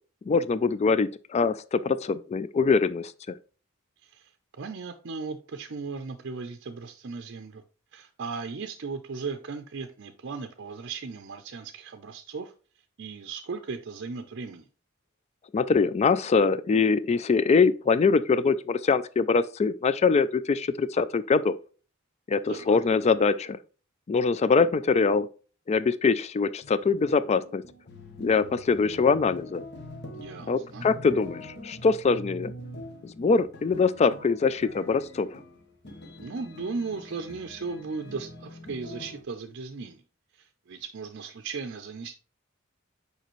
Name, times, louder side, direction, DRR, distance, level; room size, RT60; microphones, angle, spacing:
voice 1, 0.3-3.4 15.5-21.6 22.3-23.6 24.1-25.3 25.7-27.6 28.2-29.6 30.5-32.5 33.0-35.3, left 4 dB, 30° left, 0.3 m, -23 dB
voice 2, 4.6-7.6 7.9-12.5 13.0-14.7 22.5-22.8 30.1-30.9 36.2-40.0 40.3-42.2, right 4 dB, 55° right, 0.5 m, -37 dB
sound 1, 26.6-39.2, equal, 55° left, 1.2 m, -44 dB
6.6 x 5.0 x 3.1 m
head